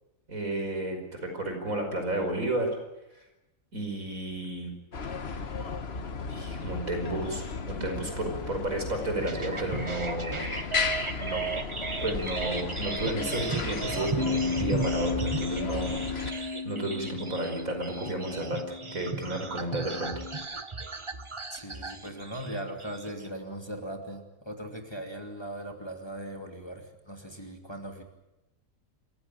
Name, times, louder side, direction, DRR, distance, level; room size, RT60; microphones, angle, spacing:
voice 1, 0.3-2.8 3.1-3.3 3.7-4.8 6.3-10.6 11.2-11.4 12.0-18.6 18.9-20.2, right 1 dB, 75° right, 5 dB, 5.7 m, -32 dB
sound 1, 4.9-16.3, left 4 dB, 50° left, 1.5 m, -35 dB
sound 2, 9.2-23.3, right 4 dB, 25° right, 1.1 m, -36 dB
Bass guitar, 14.2-20.4, left 5 dB, 45° right, 1.8 m, -35 dB
voice 2, 21.5-28.0, right 1 dB, 20° left, 3 dB, 2.7 m, -39 dB
27.0 x 16.0 x 9.1 m, 0.94 s
omnidirectional pair, 1.5 m